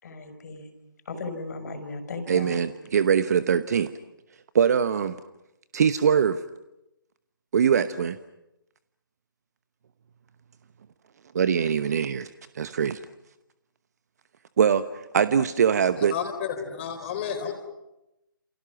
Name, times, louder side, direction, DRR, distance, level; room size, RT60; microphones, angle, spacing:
voice 1, 0.0-0.7 1.1-2.6, left 3 dB, 50° left, 5.1 m, -36 dB
voice 2, 2.3-3.9 4.5-5.2 5.7-6.4 7.5-8.2 11.3-13.0 14.6-16.1, right 7 dB, 45° right, 1.0 m, -22 dB
voice 3, 16.0-17.5, left 8 dB, 30° left, 4.2 m, -31 dB
30.0 x 28.5 x 6.0 m
figure-of-eight pair, 145°, 12 cm